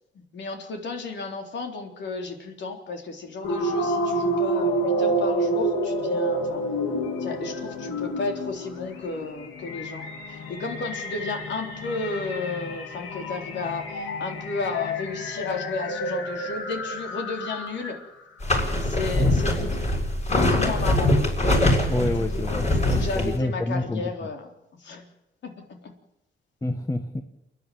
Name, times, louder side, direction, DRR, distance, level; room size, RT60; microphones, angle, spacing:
voice 1, 0.1-6.6 7.2-18.0 18.8-19.8 20.2-21.1 22.3-22.4 22.7-24.5 24.8-25.0 25.4-25.9, left 3 dB, 65° left, 4 dB, 3.8 m, -33 dB
sound 1, 3.4-18.0, right 1 dB, 85° left, 3.0 m, -29 dB
sound 2, 18.4-23.4, left 1 dB, 35° left, 7.5 m, -22 dB
voice 2, 21.9-24.0 26.6-27.2, left 1 dB, 15° left, 7 dB, 1.6 m, -28 dB
28.5 x 10.5 x 9.3 m, 0.88 s
cardioid pair, 90°, 20 cm